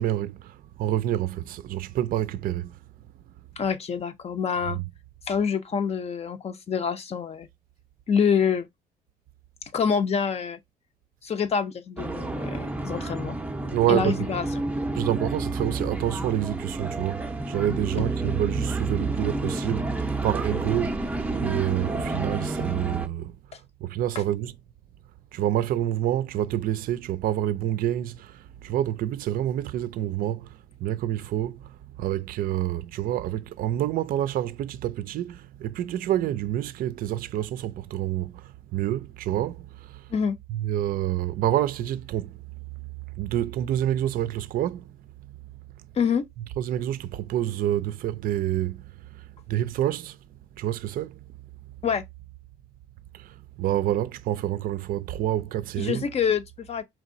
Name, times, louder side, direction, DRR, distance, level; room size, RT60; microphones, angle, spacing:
voice 1, 0.0-2.8 4.7-4.8 13.7-14.3 14.9-21.1 21.4-24.5 25.3-40.1 40.5-42.4 43.1-45.4 45.8-45.9 46.6-51.2 53.1-56.1, right 12 dB, 55° right, 0.4 m, -28 dB
voice 2, 3.6-4.8 5.3-7.5 8.1-8.7 9.7-10.6 11.2-13.4 13.9-14.5 40.1-40.4 46.0-46.2 51.8-52.0 55.8-56.8, left 6 dB, 40° left, 0.7 m, -26 dB
sound 1, 12.0-23.1, right 2 dB, 10° right, 0.6 m, -30 dB
4.5 x 2.9 x 2.6 m
cardioid pair, 110°, 17 cm